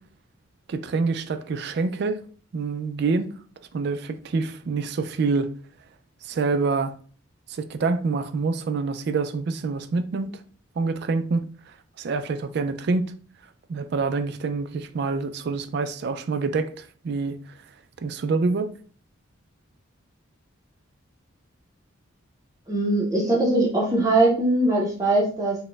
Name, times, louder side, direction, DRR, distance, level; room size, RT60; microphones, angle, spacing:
voice 1, 0.7-2.2 2.5-3.3 3.7-5.5 6.2-6.9 7.5-10.3 10.8-11.5 12.0-13.1 13.7-17.4 18.0-18.7, right 4 dB, 50° right, 0.3 m, -26 dB
voice 2, 22.7-25.6, right 2 dB, 15° right, 0.6 m, -21 dB
4.1 x 2.1 x 3.3 m
head